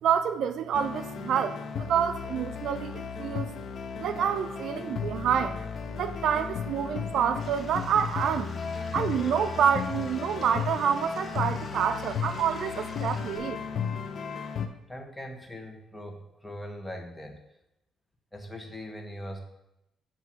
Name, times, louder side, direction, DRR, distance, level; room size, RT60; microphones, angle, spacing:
voice 1, 0.0-3.5 4.0-5.6 5.9-13.9, right 8 dB, 70° right, 10 dB, 0.4 m, -28 dB
sound 1, 0.7-14.7, left 6 dB, 55° left, 0.6 m, -35 dB
Stream / Liquid, 7.4-13.4, left 2 dB, 35° left, 1.5 m, -48 dB
voice 2, 14.9-17.4 18.3-19.4, equal, 10° left, 3 dB, 1.2 m, -41 dB
8.2 x 2.9 x 6.0 m, 0.87 s
cardioid pair, 90°, 0 cm